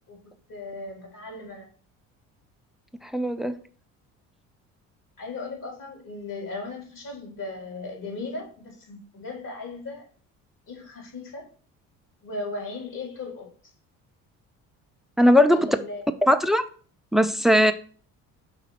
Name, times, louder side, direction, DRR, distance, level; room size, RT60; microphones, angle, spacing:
voice 1, 0.5-1.7 5.2-10.0 10.7-11.4 12.2-13.5 15.5-16.0, left 3 dB, 55° left, 4.1 m, -37 dB
voice 2, 3.0-3.5 15.2-15.8 16.2-16.6 17.1-17.7, equal, ahead, 0.6 m, -19 dB
6.2 x 3.8 x 5.9 m
hypercardioid pair, 65°, 39 cm